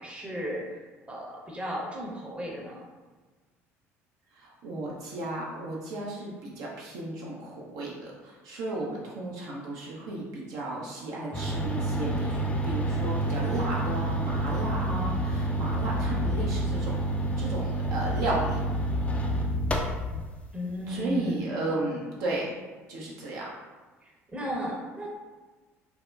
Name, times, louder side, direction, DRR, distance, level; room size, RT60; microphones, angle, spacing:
voice 1, 0.0-2.9 20.5-21.6 24.0-25.1, equal, 15° right, -2 dB, 0.7 m, -35 dB
voice 2, 4.4-16.9 17.4-18.6 20.9-22.6 22.9-23.5, right 2 dB, 55° right, -4 dB, 0.5 m, -34 dB
sound 1, 11.3-20.3, right 1 dB, 15° left, 0.4 m, -28 dB
3.4 x 2.1 x 2.3 m, 1.3 s
figure-of-eight pair, 60°, 8 cm